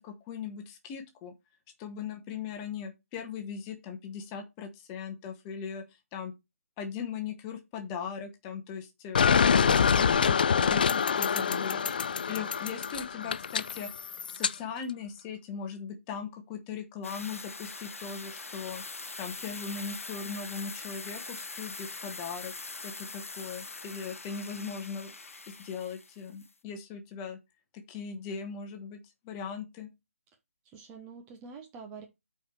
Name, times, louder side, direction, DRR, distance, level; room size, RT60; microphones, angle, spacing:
voice 1, 0.0-1.3 1.8-5.8 6.1-6.3 6.8-9.3 9.6-11.9 12.3-18.8 19.2-22.5 22.8-27.4 27.7-29.9, left 6 dB, 15° left, 1.2 m, -39 dB
sound 1, 9.2-14.5, left 6 dB, 35° left, 0.4 m, -25 dB
voice 2, 11.2-11.7 30.6-32.1, right 5 dB, 15° right, 0.9 m, -47 dB
sound 2, 17.0-26.5, left 3 dB, 65° left, 0.8 m, -42 dB
8.6 x 4.7 x 4.5 m
figure-of-eight pair, 145°, 8 cm